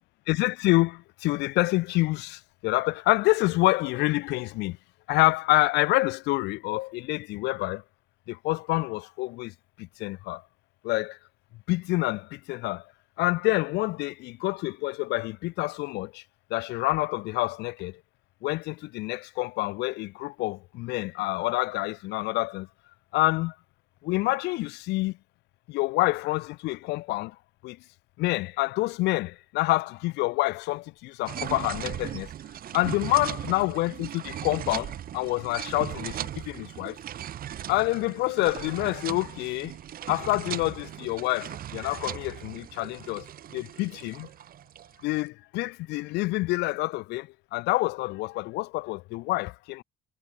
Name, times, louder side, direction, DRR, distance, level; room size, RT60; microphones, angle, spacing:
voice 1, 0.3-4.8 5.1-7.8 8.3-10.4 10.8-11.2 11.7-12.8 13.2-16.2 16.5-18.0 18.4-22.7 23.1-23.5 24.0-25.2 25.7-27.3 27.6-27.8 28.2-32.3 32.7-37.0 37.7-39.8 40.1-43.3 43.5-44.3 45.0-49.8, left 20 dB, 90° left, 1.1 m, -27 dB
sound 1, 31.3-45.2, right 11 dB, 60° right, 7.9 m, -38 dB
cardioid pair, 110°, 17 cm